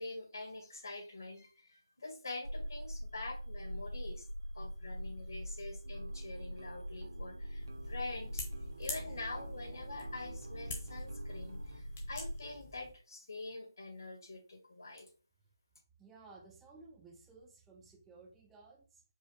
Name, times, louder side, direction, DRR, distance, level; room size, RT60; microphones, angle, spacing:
voice 1, 0.0-4.2 4.5-8.4 8.8-15.1, left 2 dB, 60° left, 2 dB, 1.7 m, -45 dB
sound 1, 2.4-12.5, equal, 90° right, 1.7 m, -43 dB
sound 2, 5.8-11.8, right 3 dB, 60° right, 0.8 m, -53 dB
sound 3, 7.6-12.9, left 4 dB, 25° left, 0.9 m, -48 dB
voice 2, 16.0-19.0, right 3 dB, 5° right, 0 dB, 0.4 m, -57 dB
4.9 x 2.3 x 4.3 m, 0.36 s
figure-of-eight pair, 165°, 2 cm